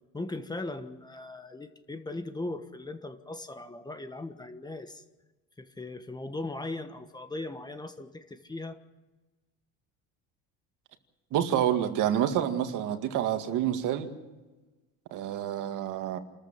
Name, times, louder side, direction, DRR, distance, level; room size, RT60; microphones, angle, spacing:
voice 1, 0.1-5.0 5.6-8.8, left 2 dB, 10° left, 1.3 m, -38 dB
voice 2, 11.3-14.1 15.1-16.2, right 10 dB, 60° right, 2.1 m, -28 dB
28.5 x 14.0 x 7.4 m
cardioid pair, 130°, 34 cm